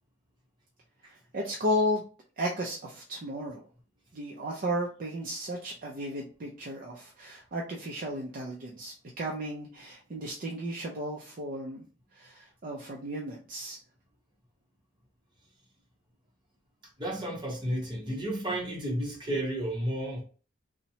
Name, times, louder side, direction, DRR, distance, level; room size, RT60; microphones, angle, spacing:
voice 1, 1.3-2.0 2.4-3.6 4.1-11.8 12.1-13.8, equal, 45° right, 0.4 m, -34 dB
voice 2, 17.0-20.2, right 1 dB, 25° right, 0.8 m, -32 dB
2.9 x 2.1 x 2.7 m
head